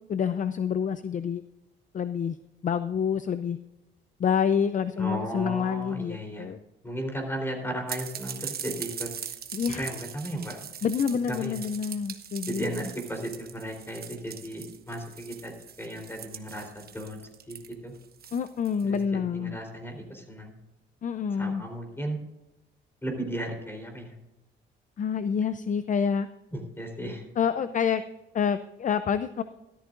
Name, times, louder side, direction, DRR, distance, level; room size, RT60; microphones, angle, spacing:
voice 1, 0.1-1.4 1.9-2.4 2.6-3.6 4.2-6.6 9.5-9.9 10.8-12.9 18.3-19.6 21.0-21.6 25.0-26.3 27.4-28.0 28.3-29.4, left 7 dB, 40° left, 12 dB, 0.5 m, -27 dB
voice 2, 5.0-6.5 6.8-9.1 9.7-10.7 11.3-11.6 12.5-15.5 15.8-17.9 18.9-20.6 21.4-22.2 23.0-24.1 26.5-27.2, right 1 dB, 10° left, 3 dB, 3.7 m, -35 dB
sound 1, 7.9-19.0, right 8 dB, 50° right, 1.1 m, -41 dB
13.5 x 13.0 x 2.5 m, 0.97 s
cardioid pair, 90°, 20 cm